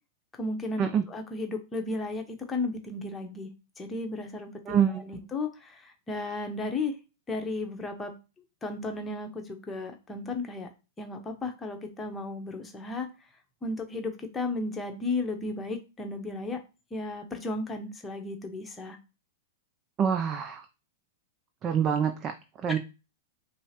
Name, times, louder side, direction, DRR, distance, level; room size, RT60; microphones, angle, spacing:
voice 1, 0.3-3.5 3.8-6.9 7.3-8.1 8.6-10.7 11.0-13.1 13.6-16.6 16.9-19.0 22.7-22.8, left 2 dB, 15° left, 4 dB, 0.8 m, -34 dB
voice 2, 20.0-20.6 21.6-22.3 22.6-22.8, right 8 dB, 30° right, 7 dB, 0.4 m, -25 dB
5.5 x 2.0 x 2.9 m, 0.30 s
hypercardioid pair, 110°, 0 cm